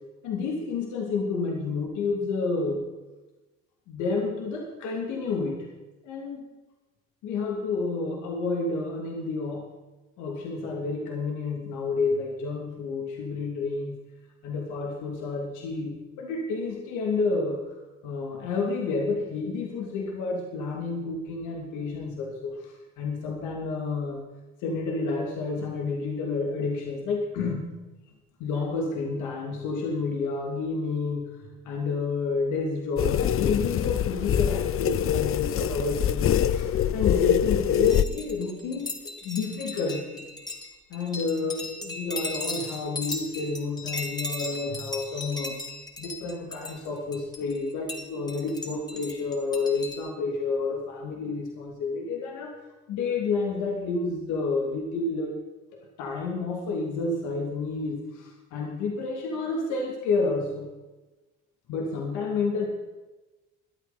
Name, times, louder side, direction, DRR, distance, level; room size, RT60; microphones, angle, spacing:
voice 1, 0.2-2.8 3.9-5.7 6.0-6.5 7.2-9.7 10.2-14.0 14.4-17.8 18.0-24.2 24.6-27.7 28.4-31.4 31.6-40.2 40.9-45.6 46.0-52.5 52.9-55.4 55.7-60.7 61.7-62.7, left 3 dB, 75° left, 0 dB, 3.1 m, -30 dB
sound 1, 33.0-38.0, left 10 dB, 45° left, 0.7 m, -24 dB
sound 2, 37.9-50.1, left 2 dB, 15° left, 3.2 m, -37 dB
23.0 x 9.2 x 4.4 m, 1.1 s
supercardioid pair, 80°, 30 cm